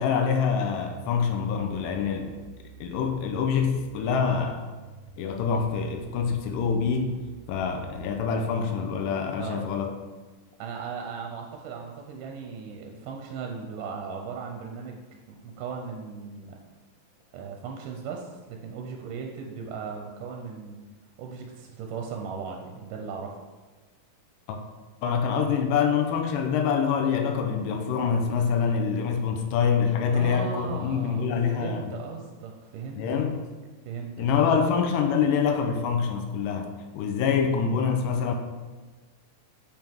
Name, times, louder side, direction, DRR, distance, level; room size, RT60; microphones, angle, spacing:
voice 1, 0.0-2.4 2.8-4.6 5.2-7.2 7.5-9.9 24.5-24.6 25.0-31.9 33.0-33.5 34.2-38.3, left 6 dB, 85° left, 4 dB, 2.2 m, -25 dB
sound 1, 1.7-9.1, right 6 dB, 40° right, 1.6 m, -48 dB
voice 2, 10.6-16.6 17.3-20.8 21.2-23.3 30.1-33.0 33.9-34.7, right 5 dB, 80° right, 2 dB, 2.1 m, -37 dB
5.8 x 5.4 x 3.5 m, 1.3 s
omnidirectional pair, 3.8 m